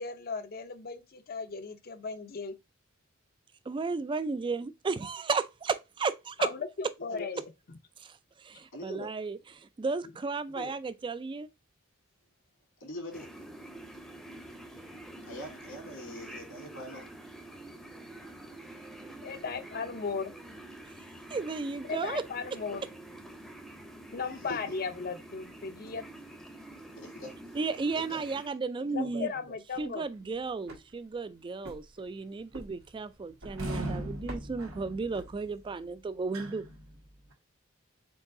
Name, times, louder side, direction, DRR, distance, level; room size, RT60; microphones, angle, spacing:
voice 1, 0.0-2.5 6.4-7.4 19.2-20.3 21.9-22.9 24.1-26.0 28.9-30.1, left 5 dB, 45° left, 0.6 m, -36 dB
voice 2, 3.7-6.5 8.0-11.5 21.3-22.2 27.5-29.3 29.8-36.7, right 4 dB, 25° right, 0.3 m, -34 dB
voice 3, 7.1-7.4 8.7-9.1 10.5-10.7 12.8-13.3 15.3-17.1 21.9-22.0 24.4-24.7 26.9-27.6 28.0-28.2 28.8-29.3, equal, 80° left, 2.0 m, -43 dB
sound 1, 13.1-28.5, right 1 dB, ahead, 0.7 m, -47 dB
sound 2, 29.5-35.8, right 1 dB, 90° right, 1.6 m, -50 dB
sound 3, 33.5-37.3, right 1 dB, 75° right, 1.1 m, -39 dB
4.5 x 3.9 x 2.6 m
head